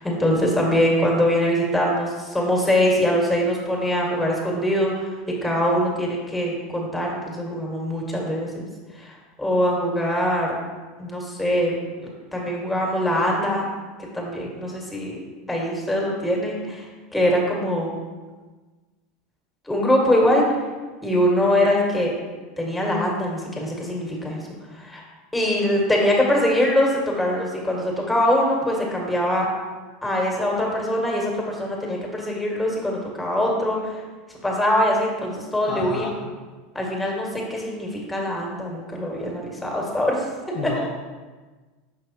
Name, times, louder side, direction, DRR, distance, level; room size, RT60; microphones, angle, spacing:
voice 1, 0.0-5.1 5.4-8.6 9.0-10.5 11.0-11.7 12.3-13.6 14.1-15.2 15.5-16.8 17.1-17.9 19.7-20.4 21.0-22.1 22.6-24.4 24.7-25.0 25.3-29.5 30.0-34.0 34.4-36.1 36.7-40.2, equal, 5° left, -2 dB, 1.8 m, -23 dB
voice 2, 35.6-36.2 40.5-40.9, left 4 dB, 50° left, 0 dB, 0.7 m, -30 dB
6.0 x 5.4 x 2.9 m, 1.3 s
hypercardioid pair, 85°, 0 cm